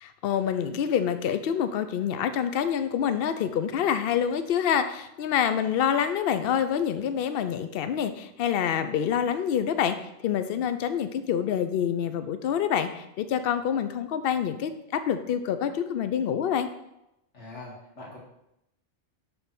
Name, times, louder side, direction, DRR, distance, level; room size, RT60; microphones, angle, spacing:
voice 1, 0.0-10.0 10.2-16.7, left 8 dB, 60° left, 10 dB, 0.7 m, -27 dB
voice 2, 17.3-18.2, left 2 dB, 80° left, -5 dB, 2.3 m, -43 dB
6.8 x 3.6 x 5.9 m, 0.85 s
omnidirectional pair, 1.2 m